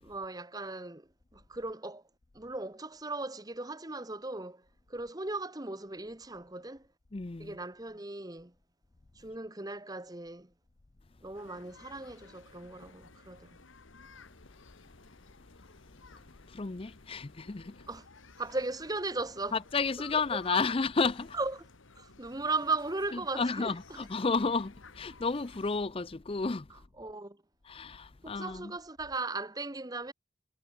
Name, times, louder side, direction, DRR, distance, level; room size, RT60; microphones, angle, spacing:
voice 1, 0.0-2.0 2.3-6.9 7.4-8.5 9.1-10.5 11.2-13.6 17.9-18.1 18.4-19.6 20.3-20.6 21.3-21.6 22.0-24.1 27.0-27.4 28.2-30.1, right 3 dB, 20° right, 1.4 m, -37 dB
voice 2, 7.1-7.6 16.5-17.8 19.5-21.4 23.3-26.8 27.6-28.7, left 4 dB, 30° left, 0.5 m, -32 dB
sound 1, 11.3-25.8, left 4 dB, 90° left, 1.8 m, -55 dB
head